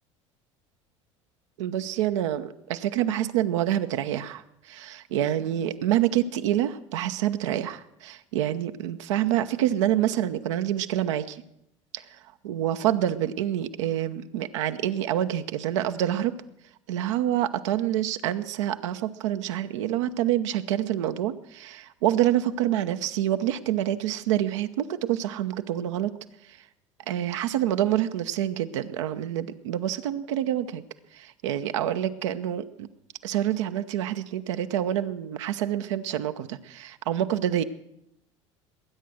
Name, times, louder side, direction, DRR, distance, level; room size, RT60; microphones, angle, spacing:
voice 1, 1.6-11.4 11.9-16.3 16.9-26.1 26.5-26.6 27.1-30.8 31.1-32.9 33.2-37.6, right 12 dB, 70° right, 10 dB, 0.9 m, -27 dB
20.5 x 9.3 x 6.3 m, 0.79 s
hypercardioid pair, 70°, 16 cm